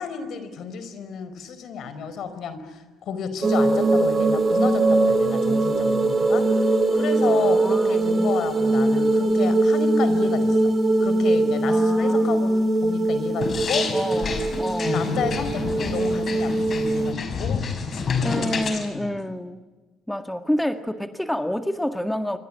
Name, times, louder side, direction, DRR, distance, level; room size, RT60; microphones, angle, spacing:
voice 1, 0.0-10.6 11.0-12.5 12.8-14.1 14.8-18.6 18.9-19.2, left 6 dB, 65° left, 11 dB, 4.8 m, -32 dB
sound 1, 3.4-17.1, right 2 dB, 35° right, 2.6 m, -21 dB
voice 2, 7.2-8.2 11.7-12.4 13.9-15.1 18.2-19.7 20.1-22.4, left 1 dB, 5° left, 8 dB, 1.8 m, -28 dB
sound 2, 13.4-18.9, left 5 dB, 45° left, 5.7 m, -28 dB
27.5 x 24.5 x 8.7 m, 1.2 s
supercardioid pair, 75°, 0 cm